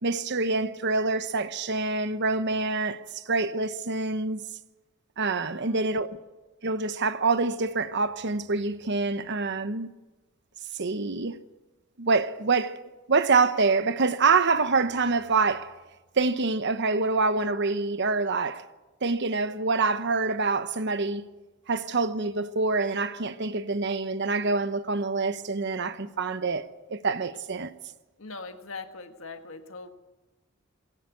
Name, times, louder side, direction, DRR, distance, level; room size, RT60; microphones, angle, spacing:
voice 1, 0.0-4.4 5.2-6.1 6.6-9.9 10.7-11.4 12.0-12.8 13.1-15.7 16.2-18.6 19.0-21.2 21.7-27.7, right 3 dB, 55° right, 1.0 m, -26 dB
voice 2, 5.3-6.0 28.2-29.9, left 3 dB, 70° left, 1.7 m, -42 dB
21.0 x 17.0 x 8.3 m
head